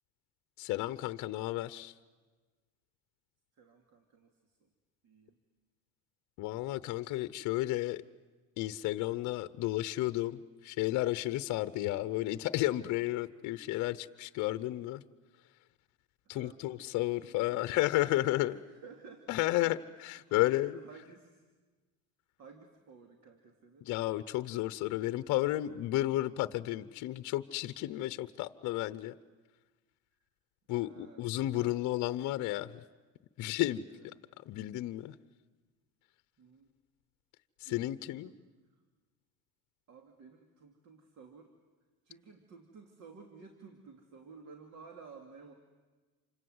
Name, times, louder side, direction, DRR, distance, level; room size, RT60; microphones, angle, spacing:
voice 1, 0.6-1.9 6.4-8.0 8.6-15.0 16.3-18.6 19.3-20.8 23.8-29.2 30.7-32.8 33.4-34.1 34.5-35.2 37.6-38.3, left 16 dB, 55° left, 0.8 m, -32 dB
voice 2, 3.6-4.5 5.0-5.4 16.3-17.8 18.2-19.8 20.2-21.4 22.4-23.9 30.8-31.8 33.9-34.0 36.4-36.7 37.6-38.4 39.9-41.5 42.0-45.5, right 5 dB, 50° right, 2.6 m, -54 dB
28.0 x 25.5 x 7.9 m
cardioid pair, 130°, 35 cm